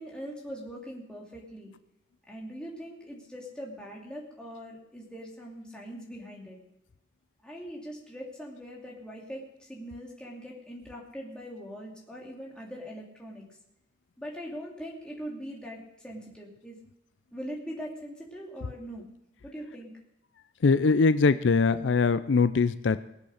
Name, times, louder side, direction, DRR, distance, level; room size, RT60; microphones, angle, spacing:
voice 1, 0.0-1.7 2.3-6.6 7.4-13.4 14.2-16.8 17.3-19.0 19.4-19.9, equal, 5° left, -4 dB, 3.0 m, -41 dB
voice 2, 20.6-23.0, left 4 dB, 80° left, 14 dB, 0.5 m, -22 dB
19.5 x 8.0 x 6.5 m, 0.85 s
head